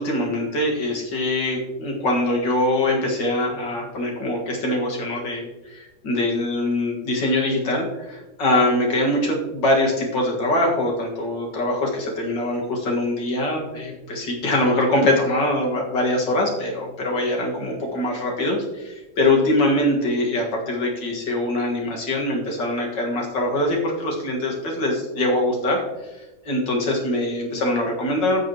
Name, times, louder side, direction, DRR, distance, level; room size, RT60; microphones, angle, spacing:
voice 1, 0.0-28.4, left 1 dB, 85° left, 0 dB, 2.5 m, -23 dB
15.5 x 6.3 x 3.0 m, 1.1 s
omnidirectional pair, 1.9 m